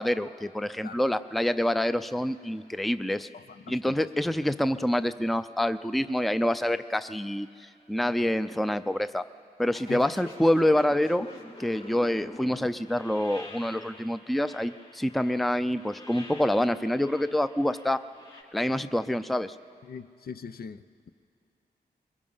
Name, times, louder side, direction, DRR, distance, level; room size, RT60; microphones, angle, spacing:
voice 1, 0.0-3.3 3.7-7.5 7.9-9.2 9.6-11.2 11.6-18.0 18.5-19.5, left 1 dB, ahead, 0.5 m, -26 dB
voice 2, 3.3-4.1 9.9-10.0 19.8-21.1, left 6 dB, 70° left, 0.6 m, -41 dB
sound 1, 9.7-18.4, left 2 dB, 40° left, 4.1 m, -47 dB
22.0 x 21.5 x 5.6 m
cardioid pair, 80°, 17 cm